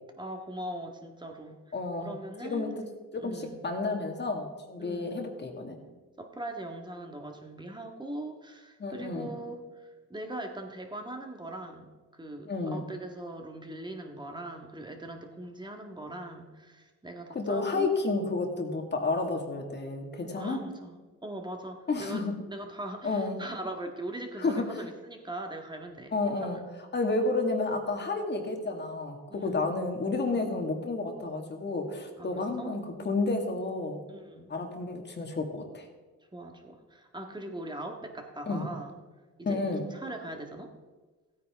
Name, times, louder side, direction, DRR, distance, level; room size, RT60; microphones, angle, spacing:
voice 1, 0.2-1.6 2.0-2.8 3.1-3.6 4.8-5.2 6.2-17.9 20.4-26.5 29.3-29.7 32.2-33.0 34.1-34.5 36.3-39.0 39.4-40.7, right 1 dB, 15° right, 3 dB, 1.6 m, -41 dB
voice 2, 1.7-2.1 2.4-2.8 3.1-5.8 8.8-9.4 12.4-12.9 17.4-20.6 21.9-22.4 23.0-23.4 24.4-24.7 26.1-26.6 26.9-34.0 34.5-35.9 38.5-38.7 39.5-39.8, left 3 dB, 35° left, 4 dB, 1.9 m, -31 dB
15.5 x 9.2 x 3.6 m, 1.3 s
cardioid pair, 90°, 30 cm